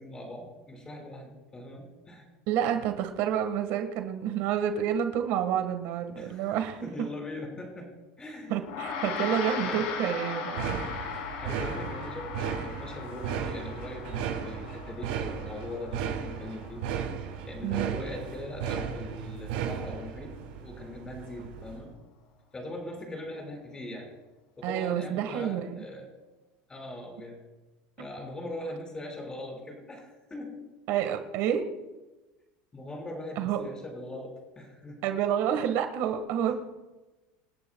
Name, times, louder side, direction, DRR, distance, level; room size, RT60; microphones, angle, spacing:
voice 1, 0.0-2.3 6.2-8.5 9.6-9.9 11.4-16.8 17.2-20.3 20.6-21.9 22.5-24.1 24.6-26.1 26.7-27.4 28.0-31.1 32.7-35.1 36.5-36.6, left 1 dB, 15° left, 1 dB, 5.2 m, -41 dB
voice 2, 2.5-6.9 8.5-10.8 17.6-18.0 24.6-25.8 30.9-31.7 33.4-33.6 35.0-36.5, right 9 dB, 65° right, 6 dB, 1.6 m, -29 dB
Gong, 8.6-18.3, left 6 dB, 85° left, 3.4 m, -38 dB
sound 1, 10.6-21.9, right 8 dB, 85° right, 5.4 m, -35 dB
28.0 x 10.5 x 2.3 m, 1.1 s
supercardioid pair, 130°, 5 cm